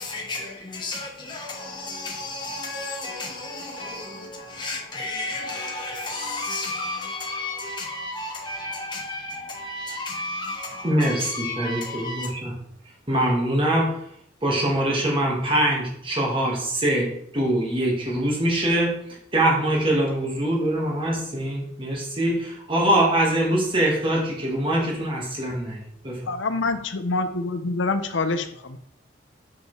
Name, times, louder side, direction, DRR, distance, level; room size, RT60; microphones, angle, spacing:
voice 1, 0.0-12.3, left 2 dB, 25° left, 1.0 m, -33 dB
voice 2, 10.8-12.5 13.1-14.0 14.4-26.2, right 1 dB, 25° right, 1.6 m, -23 dB
voice 3, 26.3-28.8, left 3 dB, 75° left, 0.7 m, -26 dB
6.5 x 5.3 x 3.2 m
head